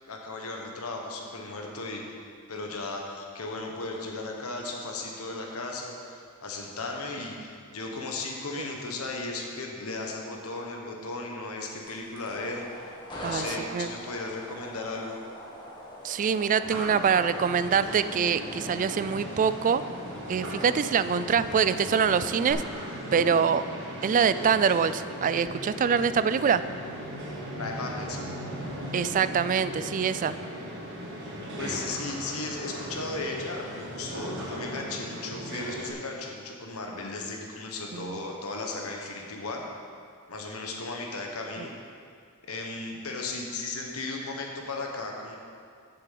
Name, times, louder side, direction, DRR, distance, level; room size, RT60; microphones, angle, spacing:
voice 1, 0.1-2.0 2.5-15.2 27.5-28.3 31.6-39.7 40.3-41.7 42.5-45.4, left 3 dB, 85° left, 0 dB, 1.3 m, -36 dB
sound 1, 11.8-22.5, equal, 20° left, 1.7 m, -43 dB
voice 2, 16.0-19.8 20.3-22.6 23.1-23.6 24.0-26.6 28.9-30.3 37.9-38.1, right 6 dB, 35° right, 14 dB, 0.3 m, -24 dB
sound 2, 16.6-35.9, equal, 55° right, 2.0 m, -38 dB
7.5 x 6.8 x 7.5 m, 2.2 s
head